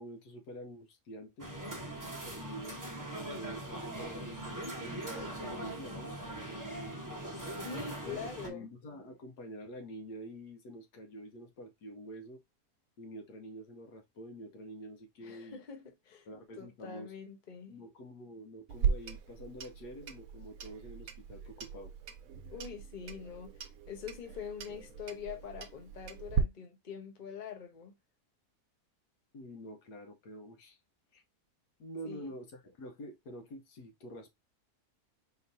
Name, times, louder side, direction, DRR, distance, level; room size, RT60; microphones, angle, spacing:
voice 1, 0.0-1.5 2.1-7.2 8.0-12.4 13.0-15.6 16.3-17.1 17.7-21.9 29.3-30.8 31.1-31.2 31.8-34.3, equal, 80° left, 1.5 m, -47 dB
sound 1, 1.4-8.5, right 1 dB, 20° right, 0.5 m, -41 dB
voice 2, 7.3-8.7 15.2-16.3 16.6-17.8 22.5-28.0 32.0-32.3, left 6 dB, 35° left, 0.9 m, -44 dB
Clock, 18.7-26.4, right 7 dB, 65° right, 1.0 m, -38 dB
4.2 x 3.1 x 2.6 m
omnidirectional pair, 1.7 m